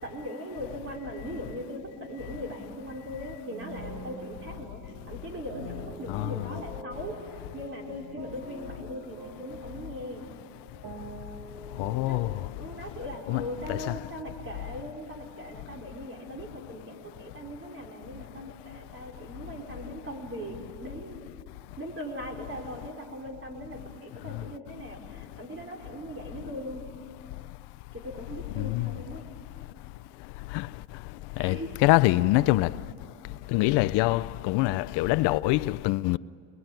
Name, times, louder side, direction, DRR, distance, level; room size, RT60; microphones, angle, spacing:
voice 1, 0.0-10.3 12.1-12.2 12.5-21.2 21.8-26.9 27.9-29.2 31.4-31.9 32.2-32.7, equal, 30° right, 5.2 m, -40 dB
sound 1, 3.5-12.3, right 1 dB, 45° right, 5.2 m, -45 dB
voice 2, 11.8-12.3 13.3-13.4 13.7-13.9 28.6-28.9 30.5-30.6 31.4-32.7 33.5-36.2, left 19 dB, 65° left, 0.6 m, -24 dB
28.0 x 21.5 x 9.0 m
cardioid pair, 125°, 44 cm